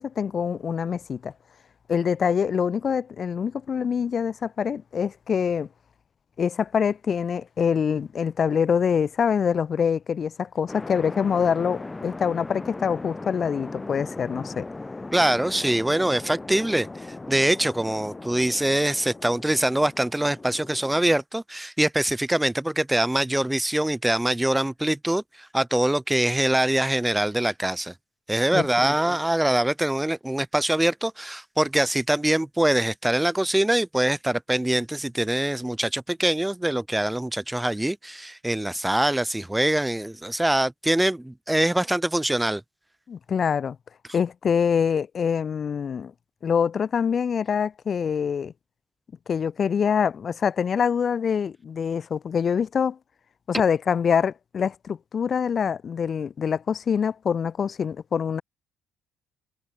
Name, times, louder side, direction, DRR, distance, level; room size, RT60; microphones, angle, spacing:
voice 1, 0.0-1.3 1.9-5.7 6.4-14.7 28.5-29.2 43.1-43.8 44.1-46.1 46.4-48.5 49.3-53.0 53.5-58.4, left 7 dB, 45° left, 0.6 m, -25 dB
sound 1, 10.7-21.2, left 2 dB, 20° left, 2.1 m, -38 dB
voice 2, 15.1-16.9 17.3-27.9 28.3-42.6, right 1 dB, 10° right, 0.5 m, -24 dB
figure-of-eight pair, 45°, 0 cm